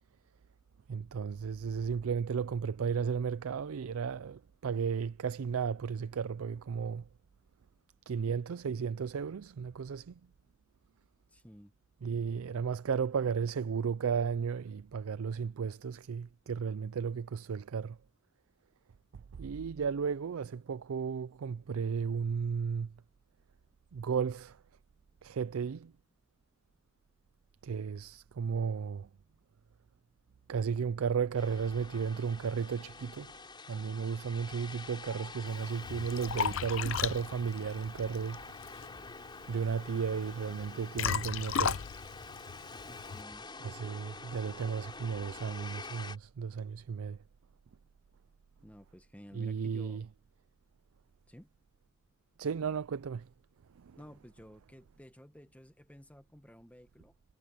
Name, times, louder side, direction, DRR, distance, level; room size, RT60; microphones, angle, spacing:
voice 1, 0.9-7.0 8.1-10.2 12.0-18.0 19.1-22.9 23.9-24.6 25.2-25.9 27.6-29.1 30.5-33.3 33.7-38.4 39.5-41.8 43.6-47.2 49.3-50.0 52.4-53.3 53.8-54.0, right 6 dB, 85° right, 0.4 m, -34 dB
voice 2, 11.3-11.7 42.8-43.5 48.6-50.0 51.3-51.5 54.0-57.1, equal, 5° left, 1.5 m, -53 dB
sound 1, 31.4-46.2, left 3 dB, 20° left, 4.8 m, -47 dB
Liquid, 35.5-43.2, left 7 dB, 65° left, 0.5 m, -36 dB
sound 2, 36.3-43.4, equal, 15° right, 5.7 m, -62 dB
head